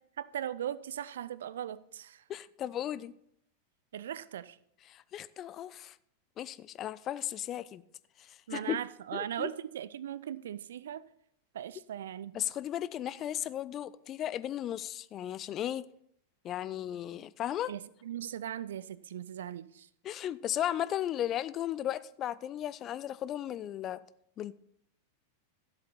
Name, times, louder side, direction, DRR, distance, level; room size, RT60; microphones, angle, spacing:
voice 1, 0.2-2.2 3.9-4.6 8.5-11.0 11.5-12.4 17.7-19.9, right 10 dB, 60° right, 19 dB, 0.4 m, -39 dB
voice 2, 2.3-3.1 4.9-6.0 6.4-7.8 8.2-8.8 9.1-9.5 12.3-15.8 16.4-17.7 20.0-24.0 24.4-24.5, left 11 dB, 30° left, 17 dB, 0.4 m, -35 dB
13.0 x 8.0 x 4.1 m, 0.71 s
figure-of-eight pair, 90°, 0 cm